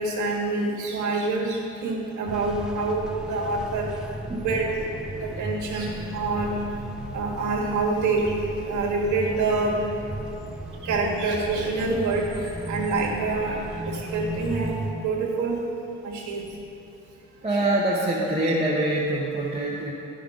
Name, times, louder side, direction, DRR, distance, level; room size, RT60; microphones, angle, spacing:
voice 1, 0.0-3.9 4.3-4.7 5.2-6.6 7.1-9.8 10.8-13.6 13.9-15.6 16.0-16.5, right 3 dB, 75° right, -2 dB, 1.6 m, -26 dB
sound 1, 2.3-14.9, right 1 dB, ahead, 0.7 m, -36 dB
voice 2, 17.4-19.9, right 1 dB, 20° right, -6 dB, 1.1 m, -25 dB
10.0 x 5.2 x 5.1 m, 2.9 s
cardioid pair, 90°, 30 cm